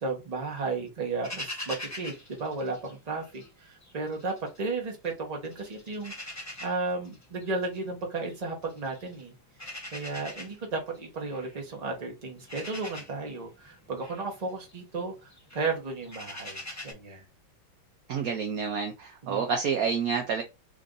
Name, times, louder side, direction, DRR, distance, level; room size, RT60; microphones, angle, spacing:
voice 1, 0.0-9.3 9.9-17.2 19.2-19.4, right 3 dB, 25° right, 0.9 m, -34 dB
sound 1, 1.2-3.5 3.8-5.1 5.4-16.9, left 1 dB, 25° left, 0.3 m, -43 dB
voice 2, 18.1-20.4, right 6 dB, 75° right, 0.8 m, -29 dB
3.7 x 2.6 x 3.7 m
omnidirectional pair, 2.2 m